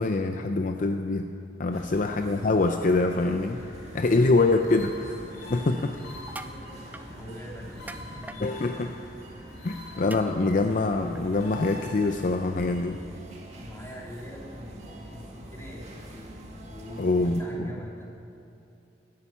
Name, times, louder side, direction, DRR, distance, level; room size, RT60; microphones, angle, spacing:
voice 1, 0.0-1.3 1.6-3.6 3.9-4.9 5.5-5.9 8.4-8.9 9.6-13.0 17.0-17.7, left 3 dB, 50° left, 5 dB, 0.6 m, -24 dB
voice 2, 1.7-2.1 3.9-4.9 5.4-6.1 6.4-8.9 9.5-10.0 10.4-10.6 13.5-18.1, equal, 15° left, -3 dB, 2.7 m, -45 dB
sound 1, 1.7-17.4, equal, 40° right, 2.0 m, -45 dB
sound 2, 3.5-12.5, left 2 dB, 65° left, 3.0 m, -47 dB
sound 3, 6.1-6.6 6.9-7.1 7.9-8.4 10.1-10.2 11.2-11.3, right 2 dB, 10° right, 0.5 m, -40 dB
17.0 x 11.5 x 5.8 m, 2.7 s
head